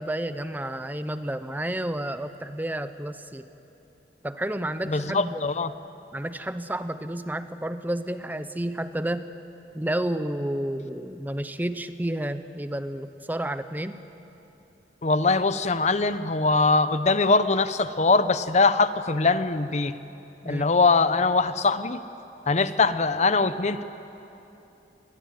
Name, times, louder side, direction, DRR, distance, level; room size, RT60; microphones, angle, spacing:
voice 1, 0.0-3.5 4.2-5.5 6.1-9.4 9.7-14.0 20.4-20.6, right 1 dB, 10° right, 11 dB, 0.7 m, -31 dB
voice 2, 4.9-5.7 15.0-19.9 20.5-22.0 22.5-23.8, left 3 dB, 40° left, 12 dB, 0.8 m, -22 dB
25.5 x 21.0 x 9.3 m, 2.9 s
head